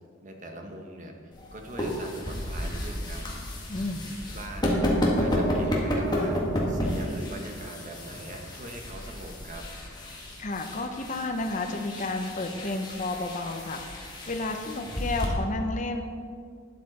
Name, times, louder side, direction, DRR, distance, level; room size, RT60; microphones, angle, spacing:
voice 1, 0.2-1.1 1.5-3.2 4.3-4.9 5.1-9.6, right 1 dB, 40° right, 3 dB, 1.3 m, -42 dB
sound 1, 1.3-15.3, equal, 20° left, 1.8 m, -31 dB
voice 2, 3.7-4.1 10.4-16.0, left 2 dB, 40° left, 4 dB, 0.7 m, -32 dB
12.0 x 9.4 x 4.2 m, 2.2 s
head